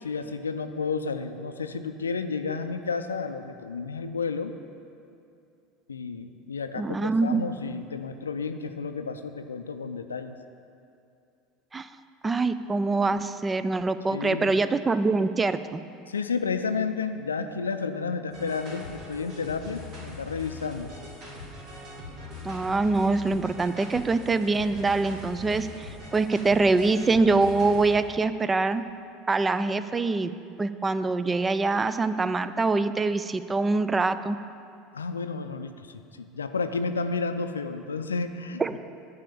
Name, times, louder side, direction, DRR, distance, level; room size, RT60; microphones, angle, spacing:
voice 1, 0.0-4.5 5.9-10.4 14.1-14.6 16.1-20.9 34.9-38.8, left 4 dB, 80° left, 8 dB, 0.4 m, -31 dB
voice 2, 6.8-7.5 11.7-11.9 12.2-15.8 22.4-28.8 29.3-30.3 30.6-34.4 38.6-38.8, right 3 dB, 20° right, 13 dB, 0.4 m, -24 dB
sound 1, 18.3-27.9, left 2 dB, 50° right, 2.7 m, -42 dB
10.5 x 5.0 x 7.0 m, 2.5 s
figure-of-eight pair, 75°, 0 cm